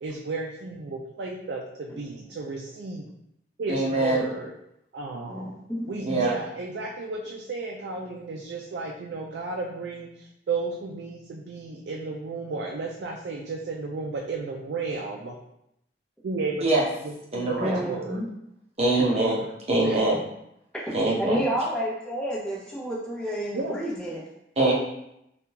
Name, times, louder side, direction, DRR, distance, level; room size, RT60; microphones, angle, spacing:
voice 1, 0.0-3.1 3.6-4.5 4.9-5.5 5.9-10.1 10.5-15.4 16.2-16.7 17.0-18.2 19.0-19.1 19.8-20.0 23.5-23.8, right 3 dB, 75° right, 0 dB, 0.4 m, -33 dB
voice 2, 3.7-4.2 6.0-6.3 16.6-16.8 17.3-17.8 18.8-20.2 20.9-21.4 24.6-24.7, right 2 dB, 35° right, -3 dB, 0.7 m, -23 dB
voice 3, 5.3-5.9 17.6-18.3 21.2-24.2, equal, 5° left, -8 dB, 0.9 m, -30 dB
3.6 x 2.3 x 2.8 m, 0.80 s
head